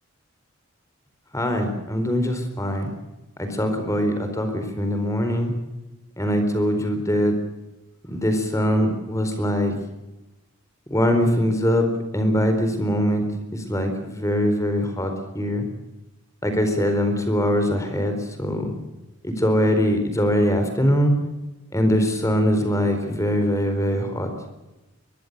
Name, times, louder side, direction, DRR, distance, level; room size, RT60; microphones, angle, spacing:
voice 1, 1.3-2.9 3.4-5.5 6.2-7.3 8.1-9.8 10.9-11.9 12.1-13.2 13.5-15.6 16.4-18.7 19.2-21.1 21.7-24.3, equal, 15° left, 7 dB, 4.2 m, -22 dB
23.0 x 21.5 x 6.8 m, 1.0 s
head